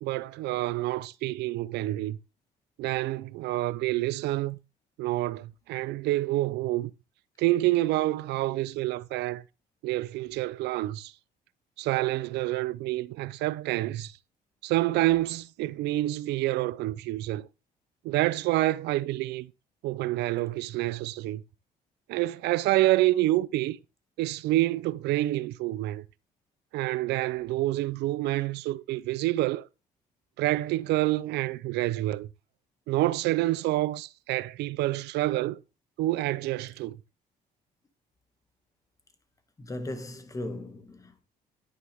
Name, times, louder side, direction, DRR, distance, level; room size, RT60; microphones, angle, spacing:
voice 1, 0.0-2.2 2.8-4.6 5.0-6.9 7.4-9.4 9.8-11.1 11.8-14.1 14.6-17.5 18.0-19.5 19.8-21.4 22.1-23.8 24.2-26.0 26.7-29.7 30.4-32.3 32.9-35.6 36.0-37.0, right 17 dB, 85° right, 0.7 m, -28 dB
voice 2, 39.6-41.2, left 1 dB, 20° left, 2.1 m, -37 dB
11.0 x 9.6 x 3.6 m
cardioid pair, 110°, 17 cm